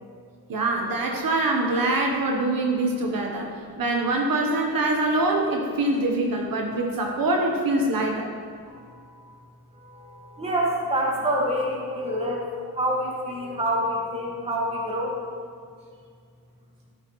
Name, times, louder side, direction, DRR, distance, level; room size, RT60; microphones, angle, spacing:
voice 1, 0.5-3.5 3.8-8.3, right 2 dB, 65° right, 0 dB, 1.1 m, -24 dB
voice 2, 8.7-9.4 9.8-12.5 12.7-15.2, right 1 dB, 15° right, -3 dB, 1.7 m, -27 dB
13.5 x 8.2 x 3.1 m, 2.1 s
wide cardioid pair, 170°, 38 cm